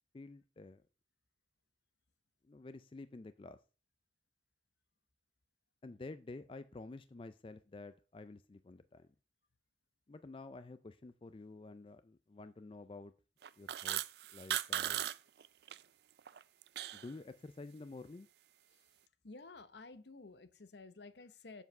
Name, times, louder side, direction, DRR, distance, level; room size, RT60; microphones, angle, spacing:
voice 1, 0.1-0.8 2.4-3.6 5.8-9.1 10.1-13.1 13.6-14.0 14.3-15.1 16.9-18.3, left 3 dB, 30° left, 0.4 m, -50 dB
sound 1, 13.4-15.2 15.4-15.8 16.2-17.1, right 11 dB, 60° right, 0.4 m, -37 dB
voice 2, 19.2-21.6, left 3 dB, 65° left, 0.8 m, -53 dB
8.1 x 7.3 x 5.3 m
head